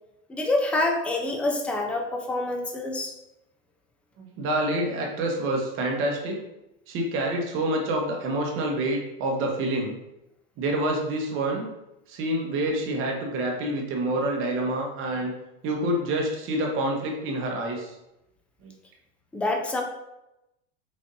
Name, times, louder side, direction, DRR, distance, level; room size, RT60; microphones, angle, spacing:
voice 1, 0.3-3.1 19.3-19.8, left 2 dB, 5° left, 2 dB, 0.3 m, -26 dB
voice 2, 4.2-6.4 6.9-10.0 10.6-11.7 12.1-15.3 15.6-17.9 18.6-18.7, right 1 dB, 45° right, 1 dB, 1.0 m, -27 dB
4.1 x 3.4 x 2.6 m, 0.90 s
supercardioid pair, 125°, 30 cm